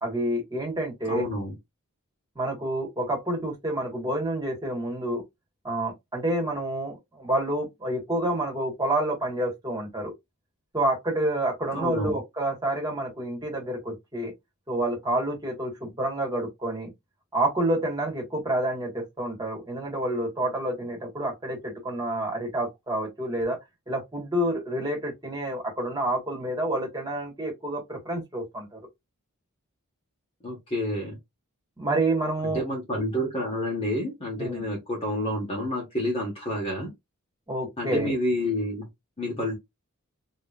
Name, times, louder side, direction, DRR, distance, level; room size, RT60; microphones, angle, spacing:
voice 1, 0.0-1.2 2.3-5.2 5.6-10.1 10.7-14.3 14.7-16.9 17.3-23.6 23.9-28.8 31.8-32.6 34.4-34.6 37.5-38.1, right 1 dB, 20° right, 1.5 m, -28 dB
voice 2, 1.1-1.5 11.7-12.2 30.4-31.2 32.4-36.9 37.8-38.9 39.2-39.5, left 1 dB, 25° left, 1.2 m, -29 dB
3.6 x 3.1 x 2.4 m
head